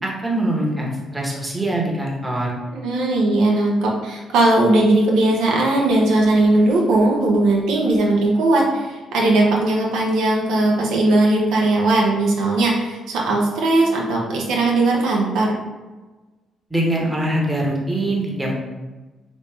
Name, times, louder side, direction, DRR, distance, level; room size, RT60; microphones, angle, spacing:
voice 1, 0.0-2.5 16.7-18.5, right 1 dB, 15° right, -3 dB, 0.9 m, -23 dB
voice 2, 2.7-15.5, right 2 dB, 90° right, -2 dB, 0.7 m, -18 dB
3.1 x 2.8 x 3.4 m, 1.2 s
cardioid pair, 90°, 0 cm